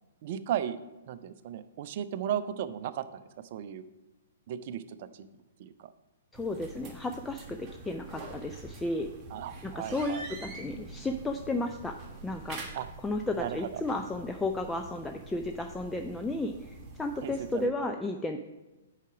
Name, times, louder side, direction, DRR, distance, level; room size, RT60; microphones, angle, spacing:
voice 1, 0.2-0.8 1.1-3.8 4.5-5.9 9.3-10.3 12.7-12.9 13.3-13.8 17.2-17.9, right 10 dB, 45° right, 13 dB, 0.5 m, -36 dB
voice 2, 6.3-9.1 9.6-12.0 12.2-12.6 13.0-18.4, left 2 dB, 10° left, 4 dB, 0.4 m, -33 dB
sound 1, 6.3-17.7, right 3 dB, 25° right, 1.6 m, -46 dB
8.2 x 4.9 x 5.9 m, 1.1 s
figure-of-eight pair, 115°, 0 cm